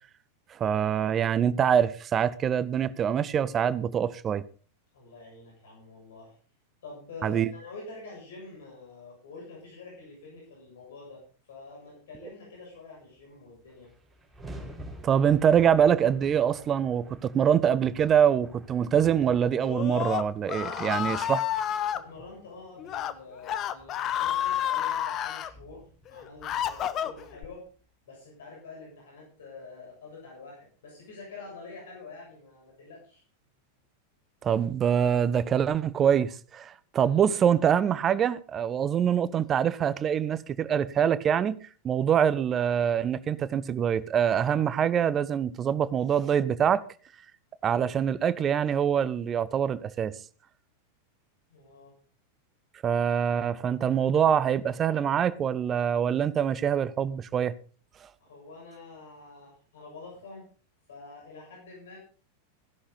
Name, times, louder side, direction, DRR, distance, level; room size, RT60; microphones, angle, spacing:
voice 1, 0.5-4.4 7.2-7.5 15.0-21.4 34.4-41.6 41.8-46.8 47.6-50.1 52.8-57.5, right 8 dB, 25° right, 0.8 m, -24 dB
voice 2, 4.9-6.4 6.8-13.9 20.6-21.2 21.9-27.6 28.1-33.2 51.5-51.9 58.2-60.5 60.9-62.0, left 3 dB, 60° left, 7.1 m, -46 dB
sound 1, 13.2-13.3 13.5-27.8, right 1 dB, 5° right, 4.6 m, -49 dB
Screaming, 19.6-22.0 22.8-23.1 23.4-25.5 26.1-27.4, left 10 dB, 30° left, 0.9 m, -30 dB
15.5 x 11.5 x 4.0 m
figure-of-eight pair, 90°, 0 cm